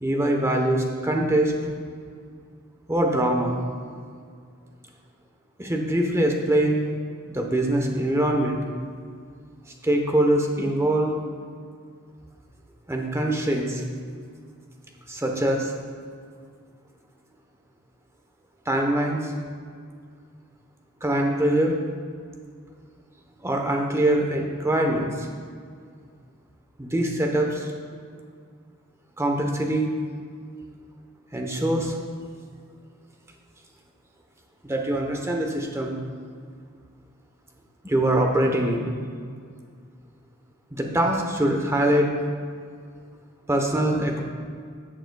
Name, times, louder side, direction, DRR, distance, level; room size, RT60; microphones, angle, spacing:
voice 1, 0.0-1.5 2.9-3.6 5.6-6.8 7.3-8.6 9.8-11.1 12.9-13.8 15.1-15.7 18.7-19.3 21.0-21.8 23.4-25.3 26.8-27.7 29.2-29.9 31.3-31.9 34.6-36.0 37.8-38.9 40.7-42.1 43.5-44.2, right 1 dB, 15° right, 1 dB, 0.9 m, -23 dB
14.0 x 7.8 x 2.3 m, 2.1 s
head